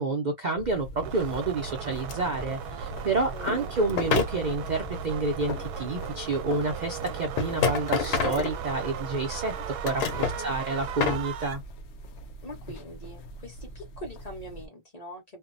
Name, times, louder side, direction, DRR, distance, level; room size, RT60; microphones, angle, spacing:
voice 1, 0.0-10.1 10.4-11.6, right 3 dB, 75° right, 0.4 m, -29 dB
sound 1, 0.6-14.7, equal, 70° left, 0.6 m, -41 dB
sound 2, 1.0-11.6, right 7 dB, 90° right, 1.1 m, -37 dB
sound 3, 2.1-2.2 3.9-4.4 6.1-6.2 7.1-9.0 9.6-10.4 10.8-11.3, left 6 dB, 85° left, 1.2 m, -27 dB
voice 2, 3.2-3.8 10.1-10.6 12.4-15.4, equal, 30° left, 1.0 m, -43 dB
2.7 x 2.1 x 2.5 m
omnidirectional pair, 1.6 m